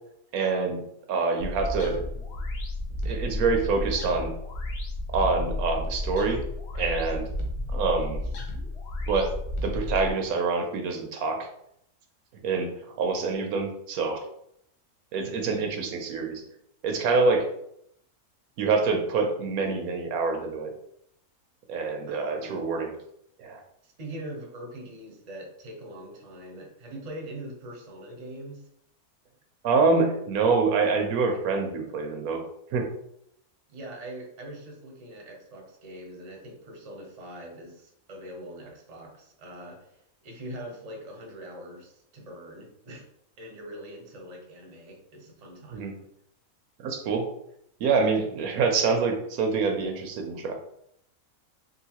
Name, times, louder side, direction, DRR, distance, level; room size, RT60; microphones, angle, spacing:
voice 1, 0.3-0.8 1.1-2.0 3.0-4.3 5.1-6.4 6.7-7.2 7.7-8.2 9.1-9.3 9.6-11.4 12.4-12.7 13.0-14.2 15.1-16.4 16.8-17.5 18.6-20.7 21.7-22.9 23.4-23.6 29.6-32.4 32.7-32.9 45.7-45.9 46.8-47.2 47.8-50.5, right 4 dB, 75° right, 3 dB, 1.0 m, -26 dB
sound 1, 1.4-10.1, left 1 dB, 55° left, 0.8 m, -32 dB
voice 2, 22.0-22.6 23.8-28.6 33.7-43.1 43.4-45.9, right 1 dB, 35° right, 0 dB, 0.6 m, -42 dB
3.8 x 2.5 x 2.8 m, 0.74 s
omnidirectional pair, 1.6 m